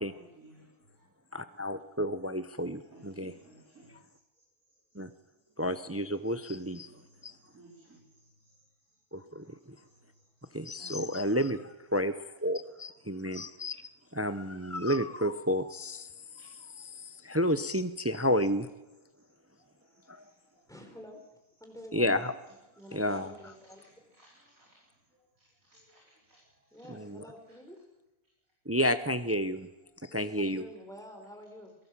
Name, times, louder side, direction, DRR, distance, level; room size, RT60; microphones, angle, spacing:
voice 1, 0.1-1.1 1.5-1.6 2.6-11.3 12.6-12.7 13.8-13.9 16.4-16.5 19.1-20.8 21.6-21.8 22.7-27.6 29.5-30.0, right 2 dB, 60° right, -3 dB, 5.1 m, -62 dB
voice 2, 1.3-3.3 5.0-5.1 5.6-6.9 10.5-11.6 11.9-12.1 12.4-13.7 14.2-16.0 17.3-18.7 21.9-22.3 22.9-23.3 26.9-27.2 28.7-29.7 30.1-30.7, equal, 20° right, 11 dB, 0.3 m, -30 dB
voice 3, 20.7-21.2 21.6-22.3 22.8-23.8 26.7-27.8 30.1-31.8, equal, ahead, 3 dB, 4.0 m, -48 dB
22.5 x 17.5 x 7.4 m, 1.0 s
omnidirectional pair, 1.6 m